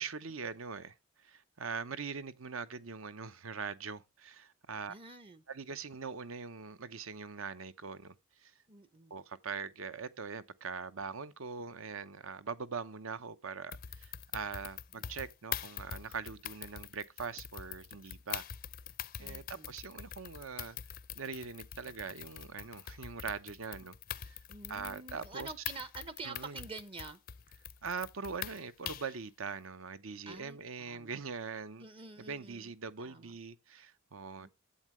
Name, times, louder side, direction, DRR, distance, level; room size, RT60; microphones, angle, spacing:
voice 1, 0.0-4.9 5.5-8.1 8.4-8.5 9.1-18.5 19.2-20.8 21.1-24.0 24.2-24.4 24.7-25.5 26.2-26.6 27.8-31.9 32.2-34.5, right 5 dB, 80° right, 0.8 m, -42 dB
voice 2, 4.9-5.4 8.7-9.1 15.0-15.1 19.2-19.7 24.5-27.2 30.3-31.2 31.8-32.7 33.0-33.3 34.4-34.5, right 3 dB, 25° right, 0.6 m, -47 dB
sound 1, 13.7-29.2, left 10 dB, 45° left, 0.4 m, -44 dB
11.5 x 8.4 x 3.1 m
head